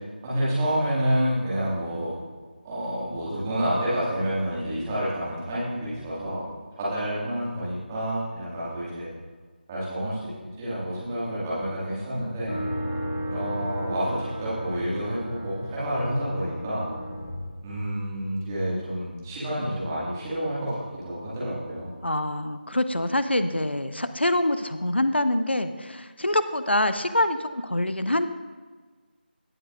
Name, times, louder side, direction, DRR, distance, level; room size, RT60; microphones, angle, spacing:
voice 1, 0.2-2.1 2.6-6.5 6.8-9.1 9.7-10.2 10.6-12.6 13.3-16.9 17.6-21.9, equal, 15° right, -9 dB, 2.1 m, -29 dB
sound 1, 12.5-18.4, equal, 45° left, 1.9 m, -34 dB
voice 2, 22.0-28.3, left 1 dB, 85° left, 11 dB, 0.6 m, -25 dB
18.5 x 6.3 x 2.6 m, 1.4 s
figure-of-eight pair, 160°, 6 cm